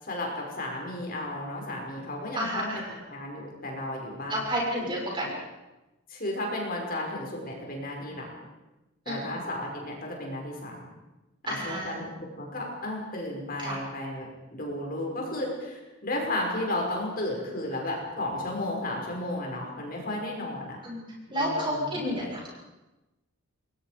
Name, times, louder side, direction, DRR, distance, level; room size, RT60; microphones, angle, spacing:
voice 1, 0.0-2.7 3.1-4.5 6.1-8.3 9.1-10.9 11.4-20.8 21.3-22.3, left 1 dB, 40° left, -1 dB, 5.7 m, -33 dB
voice 2, 2.4-2.9 4.3-5.3 9.1-9.2 11.5-11.9 13.6-13.8 20.8-21.0 21.3-22.5, equal, 20° right, -2 dB, 6.9 m, -30 dB
28.5 x 22.0 x 5.2 m, 1.0 s
head